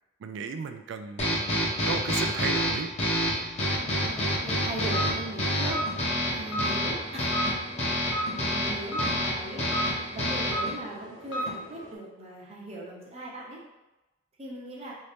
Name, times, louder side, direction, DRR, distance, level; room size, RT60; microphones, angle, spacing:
voice 1, 0.2-2.9, right 5 dB, 65° right, 8 dB, 0.3 m, -35 dB
sound 1, 1.2-10.7, equal, 35° left, 0.8 m, -28 dB
voice 2, 3.7-6.0 6.3-7.3 8.3-9.6 10.1-13.6 14.4-14.9, right 2 dB, 30° right, -4 dB, 0.8 m, -39 dB
sound 2, 4.7-11.9, right 1 dB, 75° left, 0.8 m, -35 dB
3.0 x 2.7 x 3.3 m, 1.0 s
head